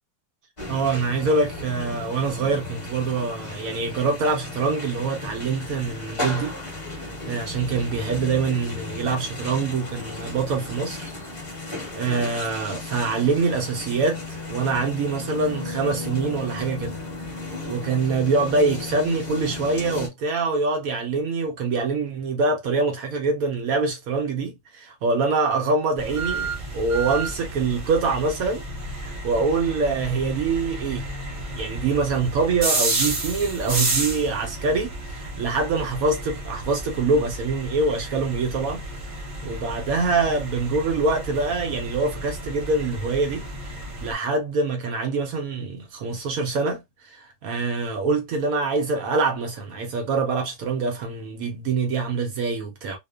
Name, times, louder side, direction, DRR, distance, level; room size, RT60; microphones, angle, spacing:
sound 1, 0.6-20.1, left 3 dB, 25° left, 0.8 m, -35 dB
voice 1, 0.7-6.5 7.0-11.1 11.9-17.0 17.7-28.6 28.9-31.1 31.5-39.2 39.4-43.5 44.0-53.0, right 4 dB, 70° right, 0.9 m, -25 dB
sound 2, 26.0-44.1, right 2 dB, 40° right, 0.8 m, -31 dB
2.8 x 2.0 x 2.2 m
omnidirectional pair, 1.9 m